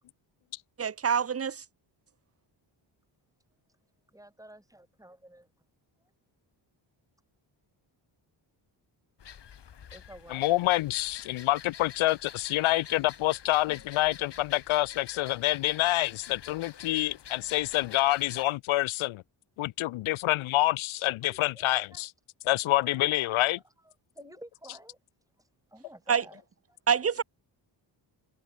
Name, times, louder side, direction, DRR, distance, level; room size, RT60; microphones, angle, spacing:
voice 1, 0.8-1.6 26.1-26.2 26.9-27.2, right 7 dB, 30° right, 0.8 m, -26 dB
voice 2, 4.1-5.5 9.9-10.5 16.1-16.2 21.2-22.0 22.7-23.6 24.1-25.0 25.7-26.4, right 1 dB, 5° right, 3.3 m, -51 dB
sound 1, 9.2-18.4, left 8 dB, 55° left, 2.4 m, -48 dB
voice 3, 10.3-19.2 19.6-22.1 22.4-23.6, left 17 dB, 80° left, 0.6 m, -27 dB
cardioid pair, 85°, 48 cm